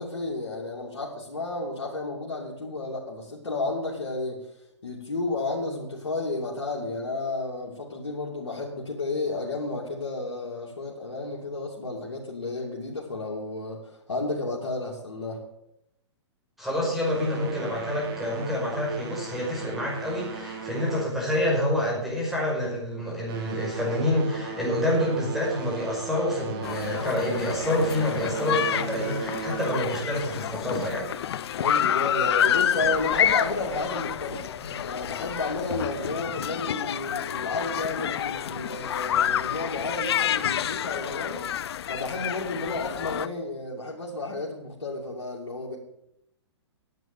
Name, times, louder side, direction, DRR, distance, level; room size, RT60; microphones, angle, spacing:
voice 1, 0.0-4.5 4.8-15.4 31.6-34.4 34.8-41.5 41.9-45.8, left 2 dB, 90° left, -4 dB, 2.8 m, -32 dB
voice 2, 16.6-31.1 34.6-34.7, left 1 dB, ahead, -3 dB, 5.2 m, -27 dB
sound 1, 17.0-21.8 22.2-22.5 23.1-30.1, right 4 dB, 50° right, 2.4 m, -37 dB
sound 2, 26.6-43.3, left 10 dB, 60° left, 0.6 m, -28 dB
10.5 x 8.1 x 9.0 m, 0.80 s
hypercardioid pair, 135°, 15 cm